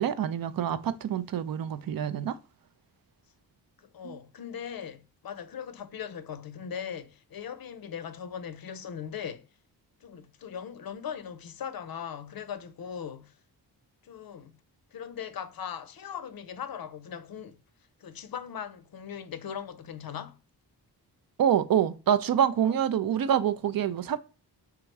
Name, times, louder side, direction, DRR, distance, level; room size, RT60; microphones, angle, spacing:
voice 1, 0.0-2.4 4.0-4.2 21.4-24.2, right 9 dB, 55° right, 0.5 m, -26 dB
voice 2, 3.8-9.5 10.0-13.3 14.0-14.5 14.9-17.6 18.0-20.4 22.7-22.8, left 8 dB, 55° left, 0.6 m, -39 dB
3.6 x 2.9 x 4.5 m
cardioid pair, 55°, 43 cm